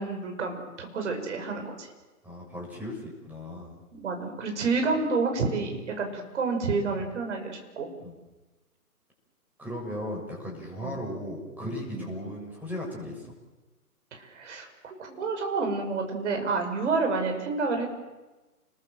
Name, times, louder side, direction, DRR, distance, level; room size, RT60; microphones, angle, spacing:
voice 1, 0.0-1.9 3.9-7.9 10.8-11.0 11.9-12.1 14.1-17.9, right 4 dB, 50° right, 3 dB, 6.6 m, -29 dB
voice 2, 2.2-3.8 8.0-8.1 9.6-13.3, equal, 5° right, -3 dB, 7.0 m, -37 dB
29.5 x 21.5 x 7.6 m, 1.1 s
figure-of-eight pair, 130°, 46 cm